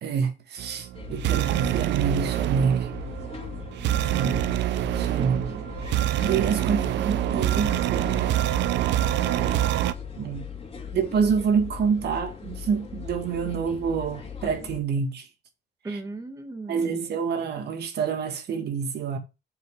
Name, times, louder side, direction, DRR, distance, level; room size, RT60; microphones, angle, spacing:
voice 1, 0.0-2.9 4.0-4.5 4.9-5.4 6.2-8.1 10.2-10.5 10.9-15.3 16.7-19.2, right 6 dB, 65° right, 2.0 m, -27 dB
sound 1, 0.6-9.9, right 13 dB, 80° right, 0.6 m, -26 dB
sound 2, 0.9-14.8, left 6 dB, 30° left, 2.3 m, -39 dB
voice 2, 5.2-5.7 6.6-8.3 15.8-17.1, right 2 dB, 20° right, 1.3 m, -38 dB
7.6 x 5.6 x 5.0 m
cardioid pair, 120°, 18 cm